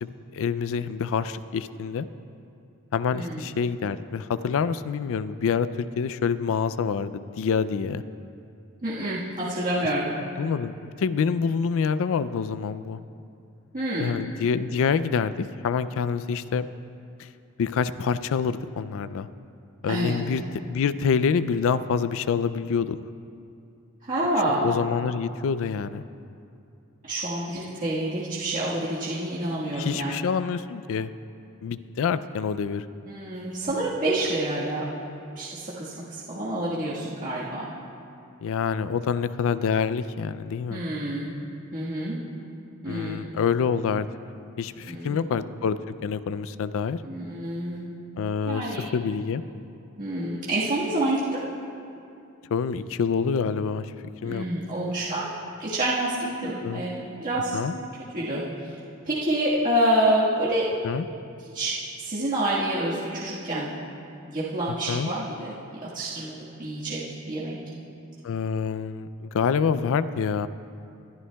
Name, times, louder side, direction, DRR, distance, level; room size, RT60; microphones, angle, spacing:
voice 1, 0.0-2.1 2.9-8.0 10.4-13.0 14.0-16.7 17.6-19.3 19.8-23.0 24.6-26.0 29.7-31.1 31.6-32.9 38.4-40.8 42.9-44.1 44.6-47.0 48.2-48.6 48.9-49.4 52.5-53.9 54.2-54.5 56.6-56.8 57.5-57.7 60.8-61.1 64.9-65.1 68.2-70.5, left 6 dB, 65° left, 15 dB, 0.4 m, -26 dB
voice 2, 8.8-10.1 13.7-14.2 19.9-20.2 24.0-24.7 27.0-30.3 33.1-34.8 35.3-37.6 40.7-41.3 41.7-42.2 42.8-43.3 44.9-45.2 47.0-47.9 48.4-48.9 50.0-51.4 54.2-55.3 55.6-56.2 56.4-57.6 58.1-58.4 59.0-60.7 61.5-63.7 64.2-65.5 65.8-67.6, right 1 dB, 40° right, -9 dB, 1.5 m, -27 dB
22.0 x 11.5 x 2.3 m, 2.6 s
head